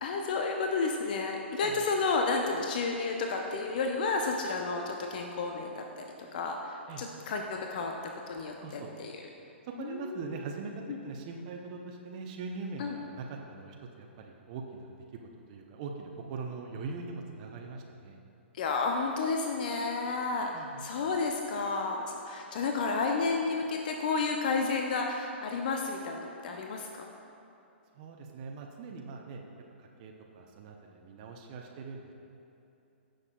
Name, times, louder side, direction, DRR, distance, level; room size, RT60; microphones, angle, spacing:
voice 1, 0.0-6.0 6.3-7.9 8.3-9.3 9.8-10.4 10.9-11.0 12.8-13.0 18.5-26.9, left 4 dB, 45° left, 2 dB, 0.6 m, -31 dB
voice 2, 8.6-8.9 9.8-10.7 11.0-15.2 15.5-18.2 20.5-20.8 28.0-29.4 30.0-32.0, right 4 dB, 35° right, 1 dB, 0.7 m, -42 dB
16.5 x 6.5 x 2.3 m, 2.8 s
figure-of-eight pair, 115°, 6 cm